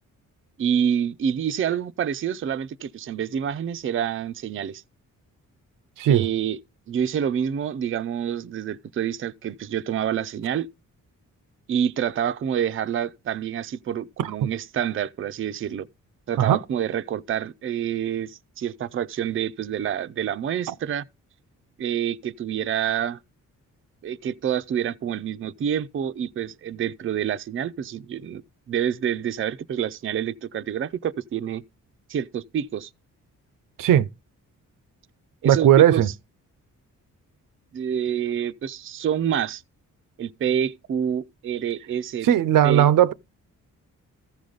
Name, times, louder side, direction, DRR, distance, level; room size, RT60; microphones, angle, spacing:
voice 1, 0.6-4.8 6.1-6.6 6.9-10.7 11.7-15.9 16.3-21.0 21.8-23.2 24.0-28.4 28.7-31.6 32.1-32.9 35.4-36.0 37.7-39.6 40.2-42.3 42.6-42.9, right 9 dB, 40° right, 0.5 m, -27 dB
voice 2, 14.2-14.5 16.4-16.6 20.7-20.8 33.8-34.1 35.4-36.1 42.2-43.1, right 11 dB, 85° right, 0.6 m, -18 dB
14.5 x 5.1 x 3.9 m
cardioid pair, 115°, 32 cm